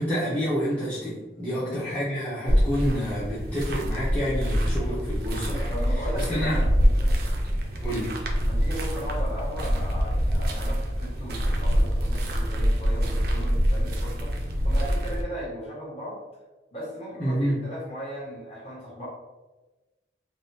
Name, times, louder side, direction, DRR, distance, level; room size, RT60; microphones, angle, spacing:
voice 1, 0.0-6.6 7.8-8.1 17.2-17.6, equal, 5° left, -11 dB, 0.6 m, -28 dB
sound 1, 2.5-15.2, equal, 55° right, 0.5 m, -25 dB
voice 2, 5.7-7.2 8.5-16.2 16.7-19.1, equal, 35° left, -6 dB, 1.2 m, -37 dB
3.4 x 2.2 x 2.7 m, 1.1 s
head